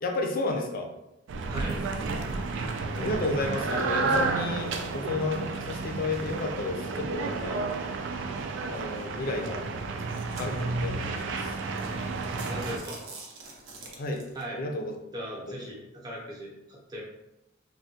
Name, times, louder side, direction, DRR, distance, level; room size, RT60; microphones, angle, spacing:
voice 1, 0.0-0.9 2.9-7.7 8.7-9.6 10.4-11.5 14.0-14.2 14.5-15.0 15.3-15.7, left 2 dB, 45° left, 2 dB, 0.5 m, -32 dB
sound 1, 1.3-12.8, right 3 dB, 65° right, 0.3 m, -31 dB
voice 2, 1.5-1.8 12.5-13.0 13.8-13.9 14.3-14.7 15.1-17.0, right 1 dB, 20° right, -5 dB, 0.7 m, -38 dB
sound 2, 9.0-9.3 9.9-10.9 11.4-11.5 11.8-11.9 12.2-14.4, right 3 dB, 90° right, 0.7 m, -45 dB
3.3 x 2.2 x 2.7 m, 0.89 s
head